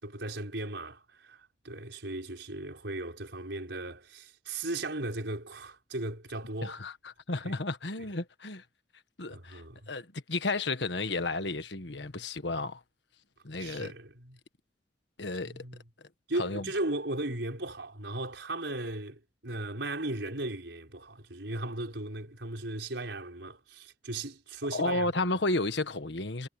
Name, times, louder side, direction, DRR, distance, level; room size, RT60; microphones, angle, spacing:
voice 1, 0.0-6.8 7.4-7.5 8.0-8.1 9.3-9.9 13.6-14.4 15.4-15.8 16.3-25.3, right 2 dB, 80° right, 5.4 m, -37 dB
voice 2, 6.6-8.6 9.2-9.6 9.9-12.8 13.4-13.9 15.2-15.6 16.4-16.6 24.7-26.5, left 2 dB, 70° left, 1.6 m, -32 dB
head